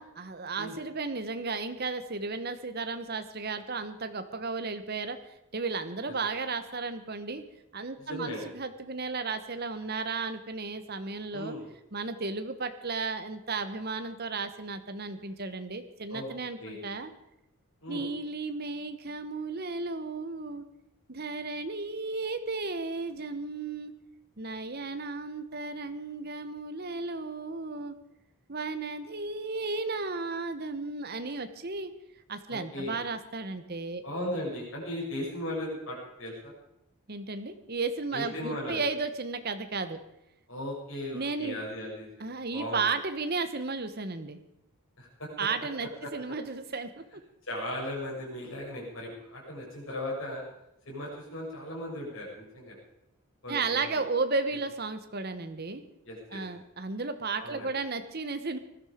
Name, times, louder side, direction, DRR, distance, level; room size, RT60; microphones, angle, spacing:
voice 1, 0.0-5.2 5.5-7.4 7.7-11.5 11.9-17.1 17.9-20.6 21.1-23.9 24.4-27.9 28.5-31.9 32.3-34.0 37.1-40.0 41.1-41.6 42.2-44.4 45.4-47.2 53.5-55.8 56.3-58.6, right 4 dB, 45° right, 9 dB, 1.1 m, -34 dB
voice 2, 8.0-8.5 11.3-11.7 16.1-16.8 17.8-18.1 32.5-33.0 34.0-36.5 38.1-38.9 40.5-42.3 42.5-42.8 45.0-45.3 46.0-46.1 47.4-50.4 50.9-52.8 53.4-54.0 56.0-56.4 57.4-57.7, left 1 dB, 60° left, -3 dB, 7.3 m, -37 dB
19.5 x 12.5 x 5.1 m, 0.87 s
head